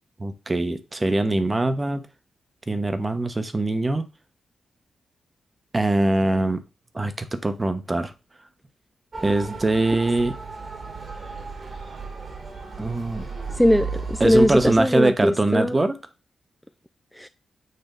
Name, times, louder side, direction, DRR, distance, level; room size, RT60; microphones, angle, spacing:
voice 1, 0.2-2.1 2.7-4.1 5.7-6.6 6.9-8.1 9.2-10.3 12.8-13.3 14.2-16.0, right 2 dB, 30° right, 1.0 m, -22 dB
Motor vehicle (road) / Siren, 9.1-14.8, right 4 dB, 45° right, 1.7 m, -35 dB
voice 2, 13.5-15.8 17.2-17.3, equal, 5° left, 0.4 m, -20 dB
6.7 x 2.9 x 5.2 m
supercardioid pair, 40°, 0 cm